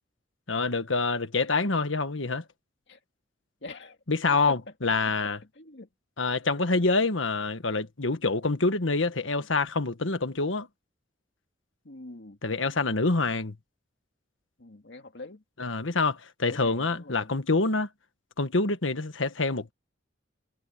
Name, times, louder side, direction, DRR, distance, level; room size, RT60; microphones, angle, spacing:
voice 1, 0.5-2.4 4.1-5.4 6.2-10.7 12.4-13.6 15.6-17.9 18.4-19.7, left 3 dB, 85° left, 1.5 m, -26 dB
voice 2, 3.6-4.0 4.3-4.6 5.1-5.2 5.5-5.9 9.4-9.5 11.8-12.4 14.6-15.4 16.4-17.3, left 2 dB, 65° left, 2.2 m, -44 dB
head